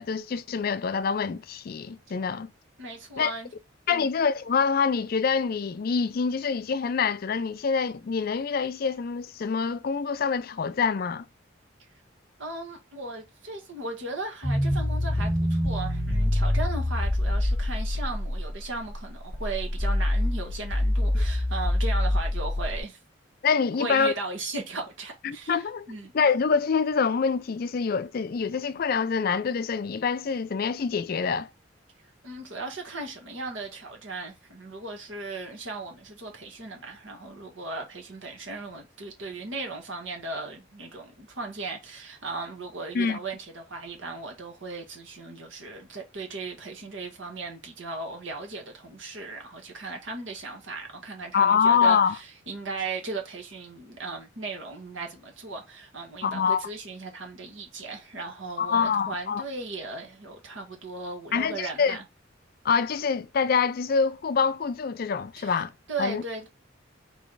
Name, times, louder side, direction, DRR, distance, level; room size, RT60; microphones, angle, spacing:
voice 1, 0.0-2.5 3.2-3.3 3.9-11.2 23.4-24.1 25.2-25.9 26.1-31.5 42.9-43.2 51.3-52.2 56.2-56.6 58.6-59.4 61.3-62.0 62.6-65.7 66.0-66.2, left 5 dB, 50° left, 0.4 m, -25 dB
voice 2, 2.8-3.5 3.9-4.1 12.4-23.0 23.8-26.1 32.2-62.0 65.4-65.6 65.9-66.5, right 3 dB, 80° right, 1.7 m, -37 dB
sound 1, 14.4-22.8, left 1 dB, 5° left, 0.9 m, -26 dB
3.9 x 3.3 x 3.7 m
head